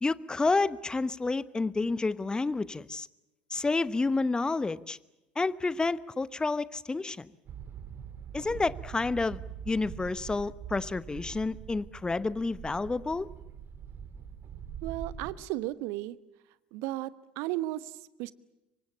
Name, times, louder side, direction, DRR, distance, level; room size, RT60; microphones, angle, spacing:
voice 1, 0.0-3.1 3.5-5.0 5.4-7.3 8.3-9.4 9.7-13.3, left 3 dB, 15° left, 18 dB, 0.9 m, -29 dB
sound 1, 7.5-15.3, right 8 dB, 45° right, 2.3 m, -43 dB
voice 2, 14.8-16.2 16.7-18.3, right 16 dB, 60° right, 17 dB, 1.0 m, -35 dB
26.5 x 24.5 x 7.2 m, 0.97 s
figure-of-eight pair, 60°, 5 cm